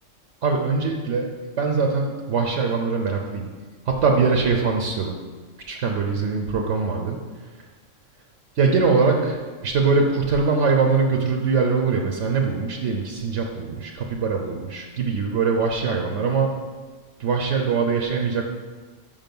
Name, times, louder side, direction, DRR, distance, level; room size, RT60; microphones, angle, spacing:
voice 1, 0.4-1.3 1.6-3.5 3.9-5.2 5.7-7.2 8.6-16.6 17.2-18.4, right 4 dB, 70° right, 2 dB, 1.0 m, -22 dB
5.7 x 5.1 x 5.3 m, 1.4 s
omnidirectional pair, 1.3 m